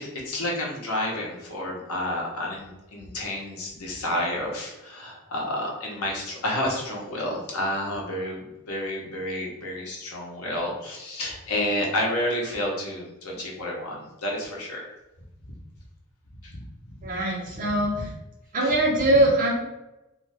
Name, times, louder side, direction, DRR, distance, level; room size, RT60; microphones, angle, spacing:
voice 1, 0.0-14.8 16.4-16.6 16.9-17.0 17.8-18.0 18.6-18.7, left 1 dB, 80° left, -1 dB, 0.8 m, -30 dB
voice 2, 17.0-17.9 18.5-19.5, right 1 dB, 35° right, -4 dB, 0.7 m, -22 dB
2.5 x 2.3 x 3.3 m, 0.96 s
head